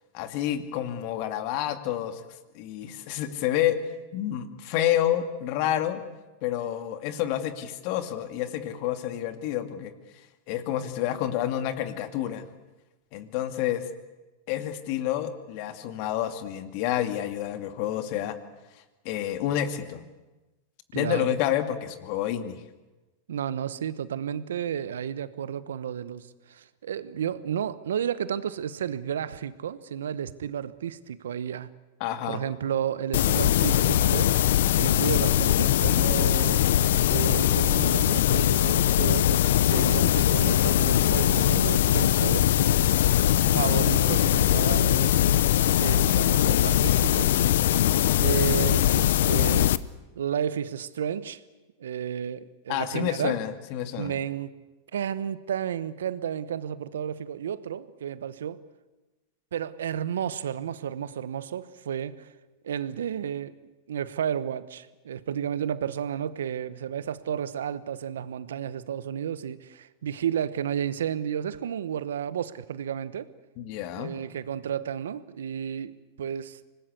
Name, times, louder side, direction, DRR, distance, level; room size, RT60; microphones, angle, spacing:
voice 1, 0.1-2.2 2.5-3.8 4.1-6.0 6.4-9.9 10.5-12.5 13.1-13.9 14.5-18.4 18.7-20.1 20.9-22.6 32.0-32.4 52.7-54.2 73.6-74.1, left 11 dB, 55° left, 9 dB, 2.4 m, -29 dB
voice 2, 20.9-21.3 23.3-31.7 32.3-34.3 34.8-36.7 37.1-42.5 43.4-45.4 45.8-47.4 48.2-49.7 50.1-51.4 51.8-53.4 54.0-54.5 54.9-58.6 59.5-62.3 62.6-63.6 63.9-73.3 74.0-75.9 76.2-76.6, right 9 dB, 80° right, 15 dB, 1.1 m, -32 dB
sound 1, 33.1-49.8, left 12 dB, 70° left, 0.7 m, -21 dB
25.5 x 19.5 x 8.3 m, 1.1 s
hypercardioid pair, 105°, 0 cm